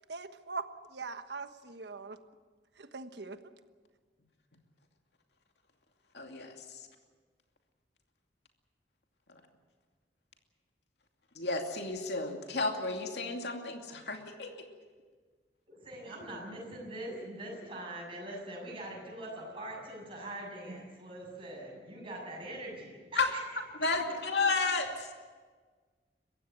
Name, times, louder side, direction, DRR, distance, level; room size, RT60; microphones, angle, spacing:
voice 1, 0.1-2.2 2.8-3.4, right 4 dB, 75° right, 9 dB, 1.3 m, -41 dB
voice 2, 6.1-6.5 11.4-14.7 23.2-23.3 23.8-25.1, left 3 dB, 70° left, 3 dB, 2.6 m, -32 dB
voice 3, 15.7-23.4 23.8-23.9, right 1 dB, 30° right, -2 dB, 7.3 m, -43 dB
22.5 x 15.5 x 9.5 m, 1.5 s
head